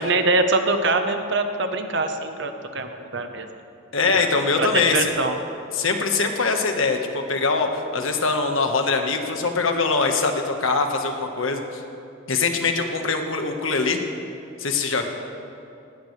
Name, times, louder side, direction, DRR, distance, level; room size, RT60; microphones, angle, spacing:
voice 1, 0.0-3.5 4.1-4.3 4.6-5.4, right 3 dB, 60° right, 6 dB, 1.1 m, -23 dB
voice 2, 3.9-5.1 5.7-11.8 12.3-14.0 14.6-15.0, left 4 dB, 80° left, 4 dB, 1.5 m, -23 dB
19.5 x 17.5 x 3.4 m, 2.6 s
head